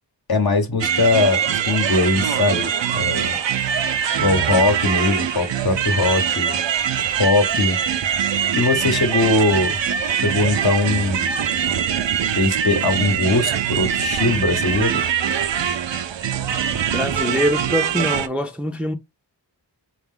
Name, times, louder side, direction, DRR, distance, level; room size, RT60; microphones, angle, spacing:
voice 1, 0.3-3.4 4.2-6.6 7.2-7.8 8.2-9.8 10.1-11.4 12.3-15.0, left 2 dB, 55° left, 0.9 m, -20 dB
sound 1, 0.8-18.3, right 8 dB, 85° right, 0.5 m, -23 dB
voice 2, 16.9-18.9, equal, 5° right, 0.5 m, -23 dB
4.2 x 2.4 x 3.6 m
wide cardioid pair, 70°, 43 cm